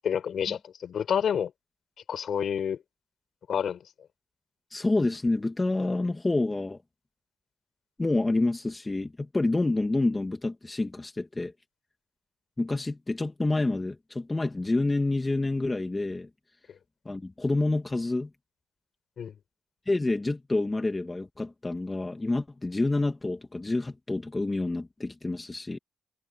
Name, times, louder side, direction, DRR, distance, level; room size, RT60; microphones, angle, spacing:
voice 1, 0.0-1.5 2.1-2.8 3.5-3.8 19.2-19.3, left 8 dB, 60° left, 4.5 m, -28 dB
voice 2, 4.7-6.8 8.0-11.5 12.6-16.3 17.1-18.3 19.9-25.8, left 2 dB, 20° left, 2.3 m, -28 dB
cardioid pair, 90°, 0 cm